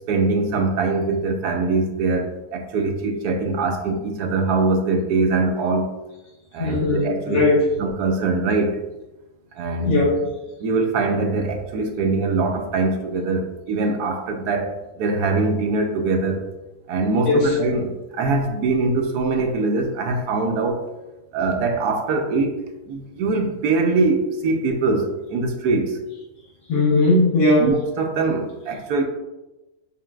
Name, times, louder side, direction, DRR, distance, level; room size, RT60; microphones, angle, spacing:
voice 1, 0.1-5.9 6.5-7.4 7.8-8.8 9.5-9.9 10.6-16.5 16.9-20.8 21.3-22.5 22.9-26.0 27.6-29.0, right 3 dB, 80° right, 3 dB, 1.2 m, -22 dB
voice 2, 6.6-7.7 9.8-10.3 17.2-17.5 26.7-27.7, left 2 dB, 75° left, -6 dB, 1.3 m, -18 dB
5.3 x 2.8 x 2.3 m, 1.0 s
omnidirectional pair, 1.7 m